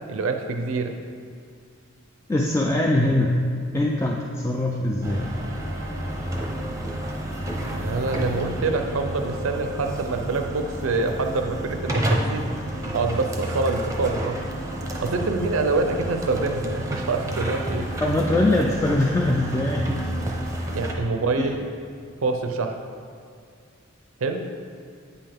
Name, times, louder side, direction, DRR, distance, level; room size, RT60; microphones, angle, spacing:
voice 1, 0.1-0.9 7.7-12.5 12.9-14.4 15.0-17.9 20.7-21.6 22.2-22.8 24.2-24.4, right 3 dB, 70° right, 5 dB, 0.5 m, -26 dB
voice 2, 2.3-3.4 3.7-5.2 18.0-20.0 21.4-21.5, left 1 dB, 15° left, -1 dB, 0.3 m, -22 dB
sound 1, 5.0-20.9, right 1 dB, 15° right, 0.7 m, -30 dB
8.3 x 5.5 x 3.5 m, 2.2 s
head